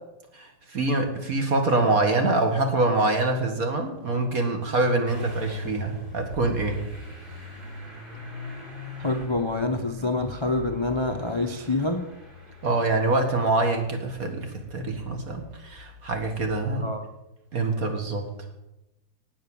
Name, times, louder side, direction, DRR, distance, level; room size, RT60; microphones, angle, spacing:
voice 1, 0.3-6.8 12.6-16.9 17.5-18.3, right 2 dB, 45° right, 4 dB, 2.3 m, -25 dB
Motor vehicle (road) / Engine starting, 5.1-16.7, left 3 dB, 25° right, 3.5 m, -41 dB
voice 2, 9.0-12.1 16.8-17.1, left 2 dB, 40° left, 6 dB, 0.4 m, -26 dB
18.5 x 6.3 x 7.2 m, 0.95 s
omnidirectional pair, 2.2 m